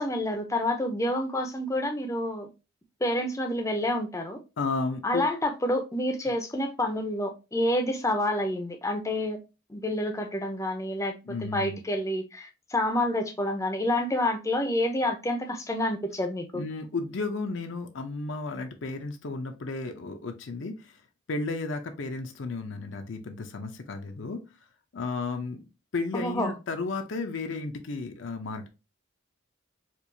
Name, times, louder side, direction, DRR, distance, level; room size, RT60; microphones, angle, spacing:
voice 1, 0.0-2.5 3.0-4.4 5.0-9.4 9.7-16.6 26.1-26.5, left 1 dB, 15° left, 0.6 m, -28 dB
voice 2, 4.6-5.3 11.2-11.8 16.5-21.0 21.3-24.4 24.9-25.7 25.9-28.7, left 3 dB, 70° left, 0.5 m, -33 dB
4.4 x 2.4 x 2.6 m
head